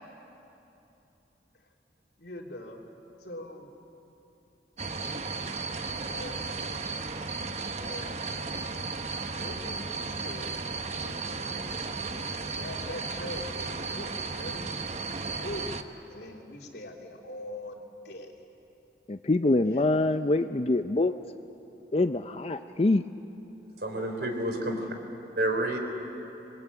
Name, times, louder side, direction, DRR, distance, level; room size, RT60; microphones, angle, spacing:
voice 1, 2.2-2.8 3.2-3.7 5.9-6.5 7.7-8.2 9.3-10.6 10.9-14.7 15.4-18.4 19.6-20.1 24.5-24.9, left 1 dB, 70° left, 0 dB, 3.0 m, -43 dB
sound 1, 4.8-15.8, right 4 dB, 40° right, 1.0 m, -34 dB
voice 2, 19.1-21.1 21.9-23.0, left 2 dB, 35° left, 9 dB, 0.5 m, -25 dB
voice 3, 23.8-24.9 25.4-25.8, right 1 dB, 65° right, 4 dB, 3.5 m, -29 dB
27.0 x 21.0 x 8.4 m, 2.9 s
head